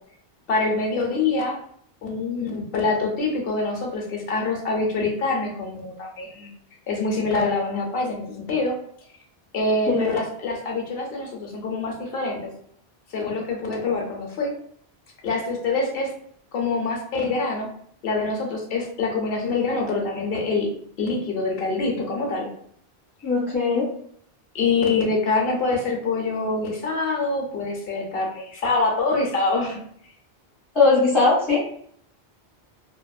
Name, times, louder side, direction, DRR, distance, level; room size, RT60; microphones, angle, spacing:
voice 1, 0.5-1.6 2.0-6.5 6.9-8.7 9.5-12.5 13.1-14.5 15.2-16.1 16.5-17.7 18.0-20.7 21.0-22.5 24.5-29.8, left 3 dB, 65° left, 0 dB, 0.8 m, -25 dB
voice 2, 23.2-23.9 30.7-31.7, left 3 dB, 25° left, -11 dB, 1.3 m, -19 dB
2.6 x 2.4 x 2.3 m, 0.63 s
omnidirectional pair, 1.1 m